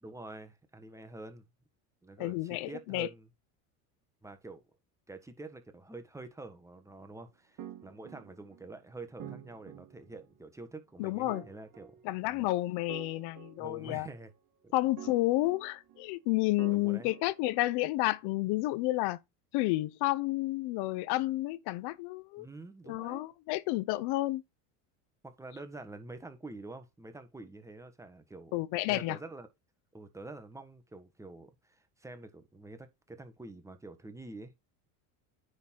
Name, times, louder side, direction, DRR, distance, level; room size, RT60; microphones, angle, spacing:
voice 1, 0.0-1.5 2.0-3.3 4.2-4.6 5.1-11.9 12.2-12.5 13.6-14.3 14.6-14.7 16.7-17.1 22.4-23.3 25.2-28.5 28.9-29.5 29.9-34.5, right 2 dB, 5° right, 1.4 m, -47 dB
voice 2, 2.2-3.1 11.0-11.4 12.0-14.1 14.7-19.2 19.5-22.5 22.9-24.4 28.5-29.2, left 18 dB, 65° left, 0.9 m, -31 dB
sound 1, 7.6-8.8 9.2-10.4 11.3-12.5 12.9-14.3 15.0-16.2 16.6-18.0, right 9 dB, 45° right, 2.1 m, -49 dB
9.7 x 4.1 x 4.6 m
supercardioid pair, 100°, 44 cm